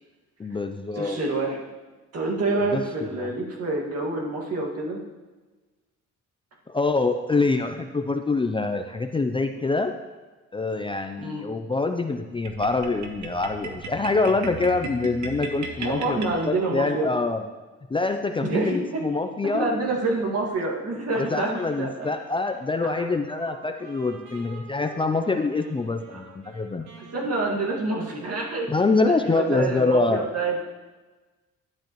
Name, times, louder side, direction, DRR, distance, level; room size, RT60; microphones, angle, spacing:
voice 1, 0.4-1.2 2.7-3.3 6.7-9.9 10.5-16.2 16.5-17.4 17.9-19.7 21.2-26.9 28.7-30.2, left 3 dB, 15° left, 6 dB, 0.4 m, -25 dB
voice 2, 0.9-1.6 2.1-5.0 11.2-11.5 15.8-17.1 18.4-19.0 19.4-22.1 22.8-23.0 26.1-26.2 27.0-28.7 29.0-30.7, right 2 dB, 55° right, -2 dB, 2.0 m, -27 dB
sound 1, 12.4-16.9, right 4 dB, 70° right, 1.0 m, -37 dB
Wind instrument woodwind instrument, 21.1-29.0, right 2 dB, 85° right, 2.0 m, -48 dB
11.5 x 7.5 x 3.0 m, 1.2 s
cardioid pair, 90°, 30 cm